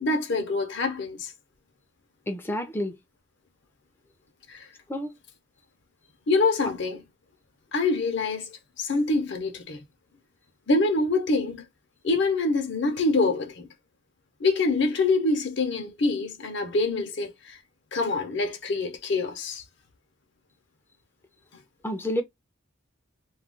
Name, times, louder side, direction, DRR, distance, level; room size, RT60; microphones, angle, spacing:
voice 1, 0.0-1.3 4.5-4.7 6.3-7.0 7.7-9.8 10.7-11.6 12.0-13.7 14.4-17.6 17.9-19.6, left 3 dB, 55° left, 0.6 m, -25 dB
voice 2, 2.3-3.0 4.9-5.1 21.8-22.2, equal, 10° left, 0.4 m, -29 dB
2.3 x 2.2 x 3.5 m
head